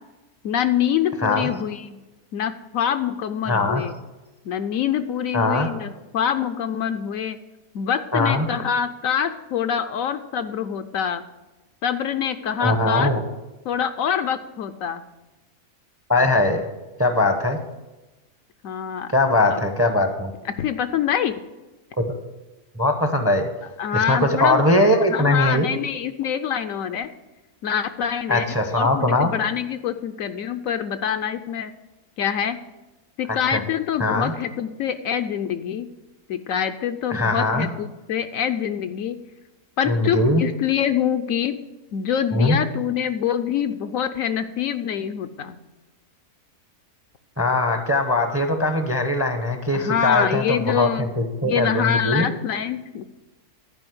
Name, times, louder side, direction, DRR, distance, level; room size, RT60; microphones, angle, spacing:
voice 1, 0.4-2.0 2.3-4.0 4.4-7.4 7.7-11.2 11.8-13.1 13.6-15.0 18.6-19.1 19.4-19.6 20.6-21.4 23.8-24.6 25.0-27.1 27.6-28.5 28.7-31.7 32.2-32.6 33.2-35.9 36.3-39.2 39.8-41.6 41.9-45.6 49.7-51.1 51.4-53.0, left 8 dB, 70° left, 9 dB, 0.9 m, -25 dB
voice 2, 3.5-3.8 5.3-5.7 8.1-8.5 12.6-13.2 16.1-16.6 17.0-17.6 19.1-20.3 22.0-22.1 22.8-23.5 23.9-25.7 28.3-29.3 33.5-33.6 34.0-34.3 37.1-37.7 39.9-40.4 42.3-42.6 47.4-52.3, left 2 dB, 15° right, 6 dB, 0.6 m, -20 dB
10.5 x 5.0 x 7.8 m, 1.1 s
omnidirectional pair, 1.6 m